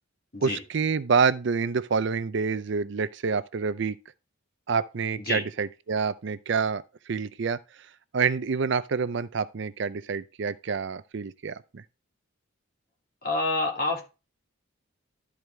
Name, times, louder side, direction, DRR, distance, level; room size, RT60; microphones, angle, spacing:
voice 1, 0.4-4.0 4.7-6.8 7.1-7.6 8.1-11.8, right 5 dB, 60° right, 0.5 m, -27 dB
voice 2, 13.2-14.0, left 2 dB, 45° left, 2.7 m, -27 dB
12.0 x 4.8 x 3.4 m
head